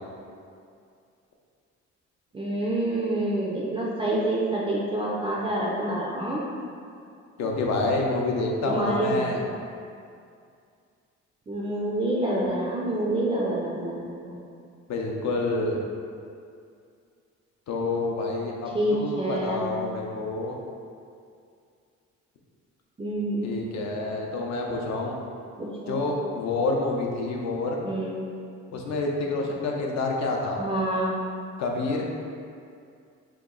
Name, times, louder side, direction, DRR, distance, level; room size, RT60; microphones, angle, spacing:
voice 1, 2.3-6.4 8.7-9.3 11.5-14.4 18.7-19.6 23.0-23.5 25.6-26.0 27.8-28.1 30.6-31.2, right 1 dB, 20° right, -5 dB, 0.3 m, -27 dB
voice 2, 7.4-9.4 14.9-15.8 17.7-20.6 23.4-25.2 25.9-27.8 28.7-30.6 31.6-32.1, left 2 dB, 65° left, 0 dB, 0.6 m, -28 dB
2.9 x 2.2 x 3.6 m, 2.4 s
cardioid pair, 90°, 30 cm